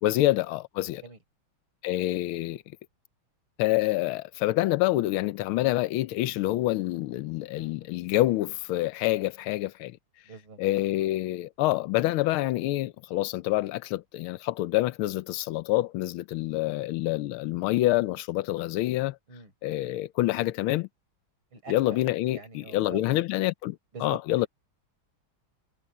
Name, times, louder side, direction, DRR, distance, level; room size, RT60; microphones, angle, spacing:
voice 1, 0.0-1.0 1.8-2.6 3.6-10.0 10.6-19.2 19.6-20.9 21.7-24.5, left 16 dB, 90° left, 1.5 m, -27 dB
voice 2, 7.6-7.9 10.3-10.6 19.3-19.5 21.5-22.0 22.3-23.1 23.9-24.5, right 5 dB, 80° right, 5.6 m, -45 dB
omnidirectional pair, 2.2 m